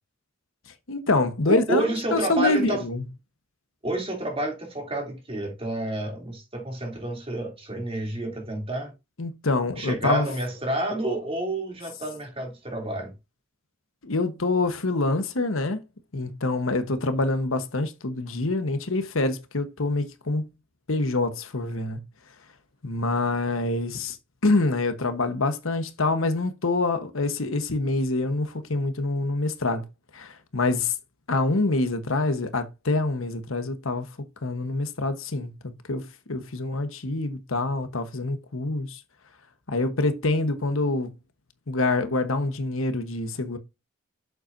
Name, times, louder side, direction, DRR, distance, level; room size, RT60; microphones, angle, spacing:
voice 1, 0.9-1.8 2.1-3.0 9.2-10.3 14.0-15.8 16.1-20.5 20.9-22.0 22.8-24.2 24.4-29.8 30.1-30.9 31.3-34.1 34.4-39.0 39.7-41.1 41.7-43.6, left 2 dB, 75° left, 1.2 m, -26 dB
voice 2, 1.4-2.8 3.8-8.9 9.8-13.1, right 1 dB, 30° right, 3.0 m, -29 dB
8.0 x 7.3 x 2.7 m
head